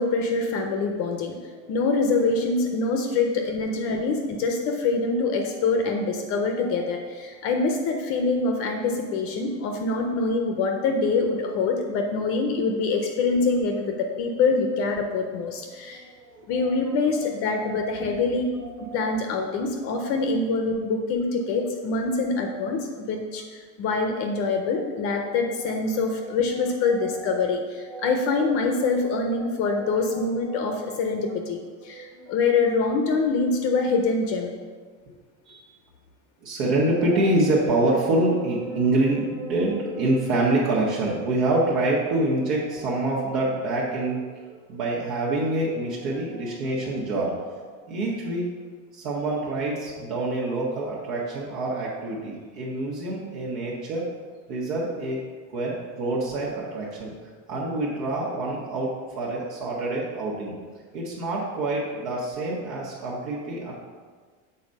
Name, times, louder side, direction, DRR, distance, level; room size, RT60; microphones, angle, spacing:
voice 1, 0.0-1.3 1.7-16.1 16.5-18.5 18.9-23.4 23.8-34.5, left 3 dB, 35° left, 3 dB, 0.5 m, -25 dB
voice 2, 16.2-16.7 17.6-17.7 18.6-19.1 25.1-25.3 25.6-27.5 27.8-28.4 29.3-30.7 31.9-32.3 35.5-35.7 36.4-48.4 48.9-54.0 54.5-55.2 55.5-57.1 57.5-60.6 60.9-63.7, right 2 dB, 80° right, -5 dB, 1.5 m, -27 dB
7.1 x 4.2 x 5.3 m, 1.5 s
cardioid pair, 175°, 39 cm